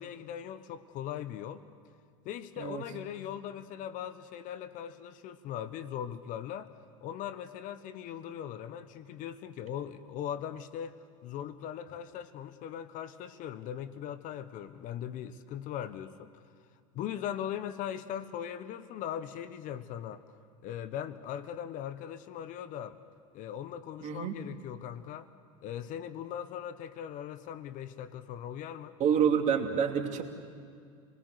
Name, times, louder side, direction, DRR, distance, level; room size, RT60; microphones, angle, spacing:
voice 1, 0.0-1.6 2.2-6.7 7.0-16.4 16.9-20.2 20.6-23.0 23.3-25.3 25.6-28.9, left 10 dB, 50° left, 13 dB, 1.2 m, -39 dB
voice 2, 24.0-24.3 29.0-30.2, right 7 dB, 45° right, 4 dB, 2.6 m, -27 dB
29.0 x 20.0 x 6.7 m, 2.3 s
hypercardioid pair, 85°, 17 cm